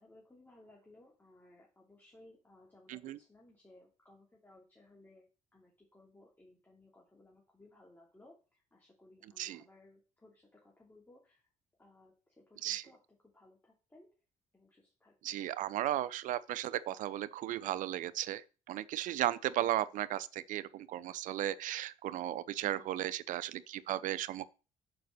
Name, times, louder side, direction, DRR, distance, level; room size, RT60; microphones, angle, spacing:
voice 1, 0.0-5.2 5.5-11.4 11.8-13.0 13.3-14.1 14.5-15.4 22.6-23.1, left 2 dB, 15° left, 2.9 m, -61 dB
voice 2, 15.2-18.4 18.7-24.5, right 13 dB, 70° right, 0.6 m, -35 dB
6.9 x 5.1 x 6.6 m
supercardioid pair, 80°, 14 cm